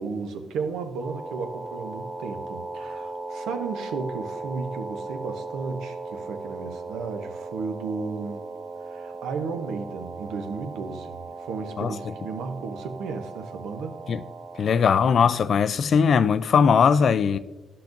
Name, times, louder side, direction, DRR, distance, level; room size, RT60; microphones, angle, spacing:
voice 1, 0.0-8.4 8.9-14.0, right 4 dB, 85° right, 0.7 m, -34 dB
sound 1, 1.0-14.8, right 3 dB, 20° right, 0.9 m, -37 dB
voice 2, 14.6-17.4, left 6 dB, 55° left, 0.3 m, -20 dB
11.5 x 5.8 x 2.6 m
cardioid pair, 90°, 0 cm